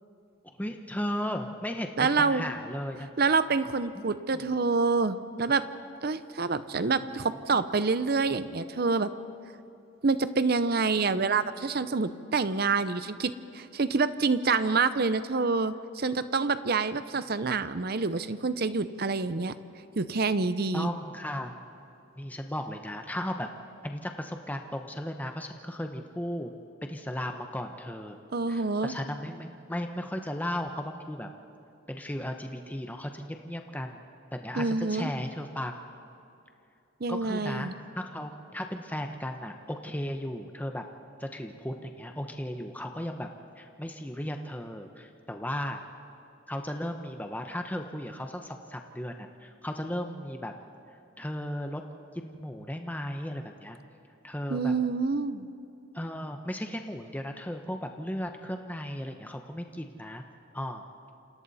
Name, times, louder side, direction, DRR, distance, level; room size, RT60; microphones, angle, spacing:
voice 1, 0.4-3.1 3.9-4.0 4.3-4.4 7.5-7.7 20.7-21.5 22.2-23.5 23.8-26.5 26.9-28.2 28.5-31.3 31.9-34.0 34.3-35.8 37.1-37.7 38.0-40.8 41.2-45.8 46.5-50.5 51.2-51.8 52.1-53.8 54.2-54.7 55.9-60.2 60.5-60.8, left 1 dB, 10° left, 4 dB, 0.9 m, -35 dB
voice 2, 2.0-2.5 3.2-5.7 6.0-9.1 10.0-19.5 20.0-20.9 28.3-28.9 34.6-35.1 37.0-37.7 54.5-55.5, right 4 dB, 50° right, 13 dB, 0.7 m, -27 dB
29.0 x 27.0 x 4.2 m, 2.6 s
head